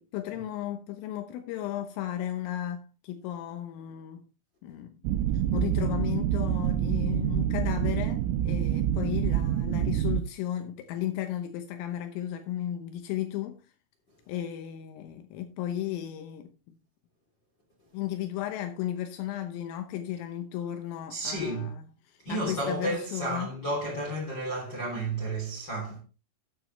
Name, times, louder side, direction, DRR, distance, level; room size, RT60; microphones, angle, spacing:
voice 1, 0.0-4.2 4.6-5.0 5.3-13.7 14.3-16.5 17.9-21.7 22.1-23.5, left 12 dB, 85° left, 3.6 m, -34 dB
sound 1, 5.0-10.2, right 11 dB, 85° right, 3.4 m, -27 dB
voice 2, 21.1-21.7 22.2-26.0, right 2 dB, 25° left, 3.1 m, -32 dB
13.0 x 9.6 x 3.3 m
omnidirectional pair, 5.8 m